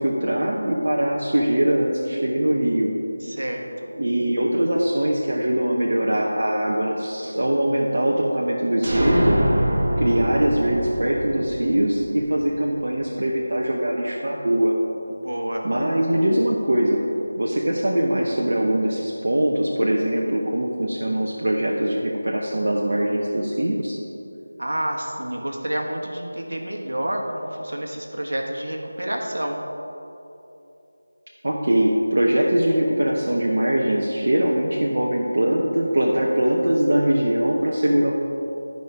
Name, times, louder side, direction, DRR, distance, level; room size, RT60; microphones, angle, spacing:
voice 1, 0.0-2.9 3.9-9.4 10.0-14.7 15.6-17.0 17.4-24.0 31.4-38.1, right 1 dB, 60° right, -2 dB, 0.9 m, -22 dB
voice 2, 3.3-3.7 15.2-15.7 24.6-29.6, right 1 dB, 80° right, 2 dB, 1.4 m, -28 dB
sound 1, 8.8-12.5, equal, 45° right, 1.6 m, -24 dB
12.0 x 5.3 x 4.8 m, 2.9 s
figure-of-eight pair, 170°, 0 cm